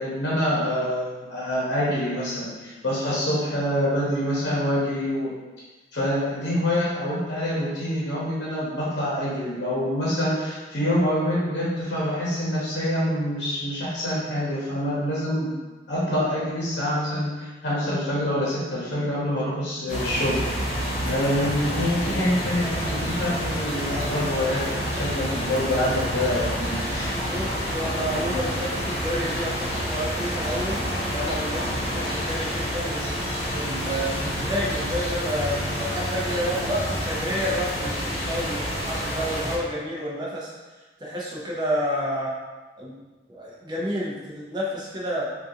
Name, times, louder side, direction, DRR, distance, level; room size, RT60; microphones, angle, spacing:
voice 1, 0.0-5.3 5.9-15.5 15.9-20.4 21.0-24.6 24.9-27.2, equal, 75° left, -7 dB, 0.9 m, -26 dB
sound 1, 19.9-39.6, equal, 35° left, 0.7 m, -28 dB
sound 2, 22.5-36.8, equal, 60° right, 0.9 m, -39 dB
voice 2, 27.1-33.1 33.5-40.5 41.0-42.3 42.8-43.0 43.3-45.4, equal, 25° right, -5 dB, 0.5 m, -30 dB
3.7 x 2.4 x 2.7 m, 1.2 s
head